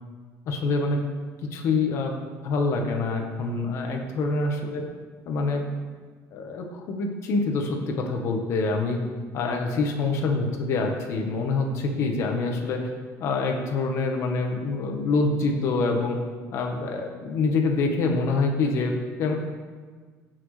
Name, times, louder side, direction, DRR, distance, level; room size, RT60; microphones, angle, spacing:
voice 1, 0.5-1.0 1.5-2.1 2.4-4.8 5.3-5.6 6.3-9.0 9.3-12.9 13.2-16.2 16.5-18.9 19.2-19.3, left 3 dB, 45° left, 3 dB, 1.2 m, -26 dB
15.5 x 6.0 x 3.3 m, 1.5 s
cardioid pair, 180°, 7 cm